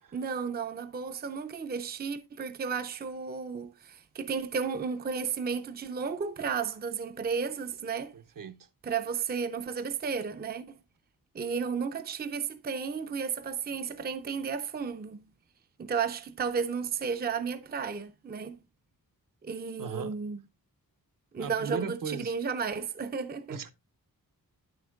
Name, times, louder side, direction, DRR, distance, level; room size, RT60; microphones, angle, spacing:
voice 1, 0.1-8.1 8.8-10.8 11.3-15.2 15.8-18.6 19.4-20.4 21.3-23.6, right 6 dB, 25° right, 0.5 m, -33 dB
voice 2, 8.1-8.7 19.8-20.1 21.4-22.3 23.5-23.7, right 6 dB, 60° right, 0.8 m, -38 dB
9.3 x 7.9 x 2.3 m
wide cardioid pair, 110°, 36 cm